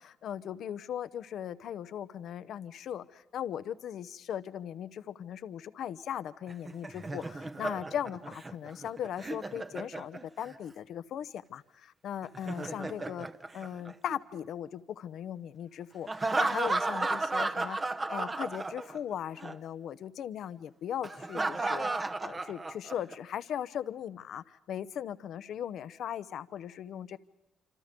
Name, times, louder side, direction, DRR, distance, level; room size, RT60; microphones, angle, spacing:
voice 1, 0.0-13.3 13.5-17.8 18.1-27.2, left 9 dB, 70° left, 13 dB, 0.8 m, -38 dB
Laughter, 6.5-10.5 12.2-14.4 16.1-19.1 19.4-19.5 21.0-23.1, right 2 dB, 25° right, 1.0 m, -34 dB
27.0 x 26.5 x 5.3 m, 0.85 s
cardioid pair, 90°, 0 cm